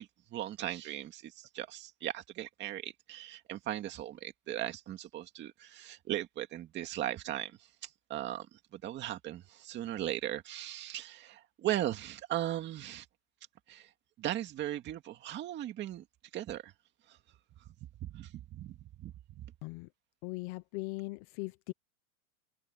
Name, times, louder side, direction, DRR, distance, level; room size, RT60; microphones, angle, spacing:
voice 1, 0.0-8.5 8.7-13.1 13.7-13.9 14.2-16.0 16.3-16.7 17.1-17.2 18.0-19.4, right 12 dB, 25° right, 2.2 m, -38 dB
voice 2, 20.2-21.7, left 23 dB, 30° left, 0.7 m, -39 dB
supercardioid pair, 150°, 42 cm